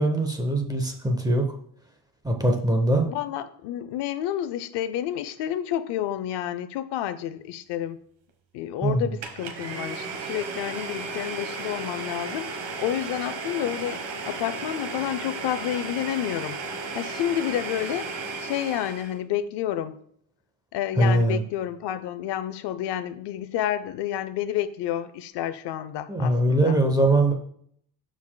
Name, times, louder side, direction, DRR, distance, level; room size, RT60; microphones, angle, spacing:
voice 1, 0.0-1.4 2.2-3.1 8.8-9.1 21.0-21.4 26.1-27.3, right 1 dB, 10° right, 4 dB, 0.7 m, -22 dB
voice 2, 3.0-8.0 8.5-16.6 16.9-20.0 20.7-26.8, left 11 dB, 70° left, 13 dB, 0.6 m, -30 dB
Domestic sounds home sounds, 9.2-19.2, right 4 dB, 65° right, 1.3 m, -34 dB
13.0 x 4.8 x 2.2 m, 0.66 s
cardioid pair, 170°, 43 cm